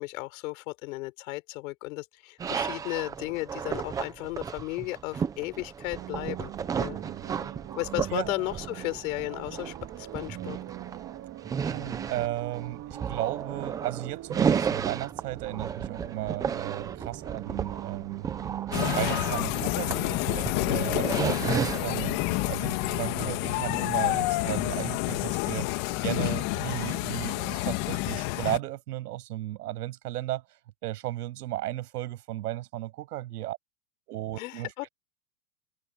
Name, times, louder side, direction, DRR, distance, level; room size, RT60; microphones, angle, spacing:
voice 1, 0.0-6.5 6.8-7.0 7.8-10.6 34.3-34.9, left 22 dB, 55° left, 5.2 m, -34 dB
sound 1, 2.4-22.1, right 7 dB, 10° right, 0.4 m, -33 dB
sound 2, 5.9-22.2, right 15 dB, 30° right, 2.0 m, -42 dB
voice 2, 11.7-18.3 18.8-20.2 20.7-25.7 26.0-30.4 30.8-33.6 34.1-34.7, right 15 dB, 70° right, 7.0 m, -35 dB
sound 3, 18.7-28.6, left 21 dB, 40° left, 1.7 m, -29 dB
supercardioid pair, 150°, 48 cm